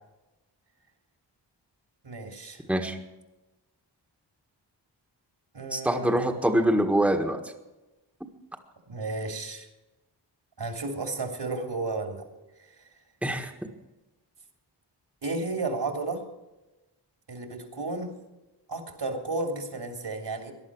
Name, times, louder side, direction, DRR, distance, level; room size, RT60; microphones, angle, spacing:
voice 1, 2.0-2.6 5.5-6.4 8.9-9.7 10.6-12.2 15.2-16.2 17.3-18.1 18.7-20.5, right 3 dB, 65° right, 5 dB, 3.2 m, -33 dB
voice 2, 5.7-7.4 13.2-13.5, right 1 dB, 5° right, 3 dB, 1.6 m, -24 dB
18.5 x 11.5 x 6.3 m, 1.0 s
wide cardioid pair, 75°, 45 cm